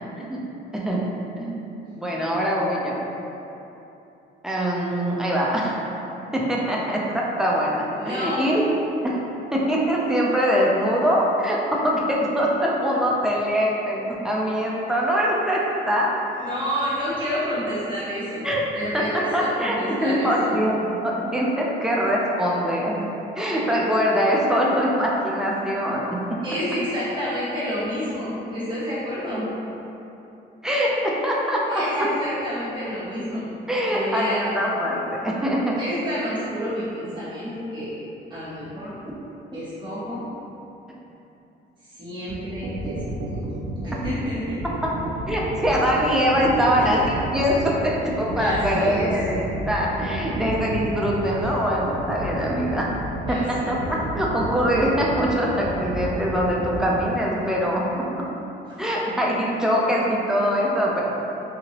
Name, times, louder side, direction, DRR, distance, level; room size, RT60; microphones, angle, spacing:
voice 1, 0.7-1.1 1.4-3.0 4.4-5.8 6.3-8.7 9.0-9.2 9.5-16.1 18.4-18.6 18.9-23.1 23.4-26.4 30.6-32.1 33.7-35.8 44.8-45.0 45.3-52.9 53.3-58.3 58.8-61.0, equal, 5° right, -4 dB, 0.5 m, -23 dB
voice 2, 8.0-8.5 16.3-18.4 18.7-20.6 26.4-29.5 31.7-33.4 33.9-34.4 35.8-38.0 38.3-38.9 39.5-40.3 41.8-43.5 43.8-44.6 46.8-46.9 48.4-49.2 53.3-53.7 58.7-58.8, equal, 25° right, -12 dB, 1.2 m, -29 dB
sound 1, 42.3-57.0, right 2 dB, 85° right, 0.4 m, -31 dB
2.9 x 2.8 x 2.9 m, 2.9 s
cardioid pair, 90°, 20 cm